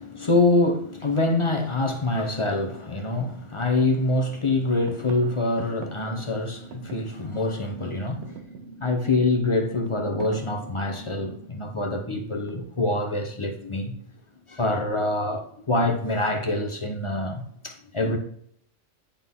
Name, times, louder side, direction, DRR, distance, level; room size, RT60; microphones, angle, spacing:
voice 1, 0.0-14.0 14.5-18.2, left 2 dB, 30° left, 0.6 m, -25 dB
sound 1, 3.1-3.2 3.6-4.2 4.4-7.6 7.9-11.5 12.5-13.0, right 8 dB, 65° right, 0.9 m, -45 dB
9.9 x 3.8 x 3.6 m
omnidirectional pair, 1.3 m